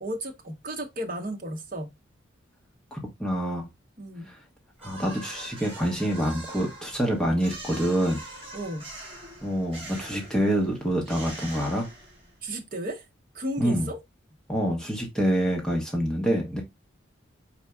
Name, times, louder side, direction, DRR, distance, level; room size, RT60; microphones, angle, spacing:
voice 1, 0.0-1.9 4.0-4.3 8.5-8.8 12.4-13.1 13.3-14.0, right 1 dB, 45° right, 0.9 m, -34 dB
voice 2, 2.9-3.7 4.3-4.4 4.8-8.2 9.4-11.9 13.6-13.9 14.5-16.6, equal, 5° left, 0.9 m, -26 dB
sound 1, 4.8-12.4, right 2 dB, 30° right, 1.7 m, -43 dB
4.4 x 4.0 x 2.2 m
head